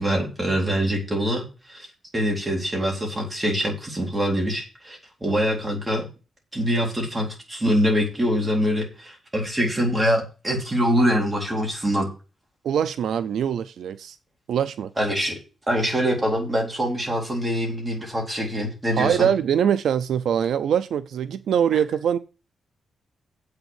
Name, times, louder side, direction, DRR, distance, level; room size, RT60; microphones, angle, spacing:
voice 1, 0.0-1.9 2.1-6.1 6.5-12.1 15.0-15.3 15.7-19.3, equal, 15° right, 3.9 m, -24 dB
voice 2, 12.6-14.2 14.5-14.9 18.9-22.2, right 8 dB, 75° right, 0.6 m, -23 dB
8.0 x 6.7 x 7.3 m
wide cardioid pair, 165°, 0 cm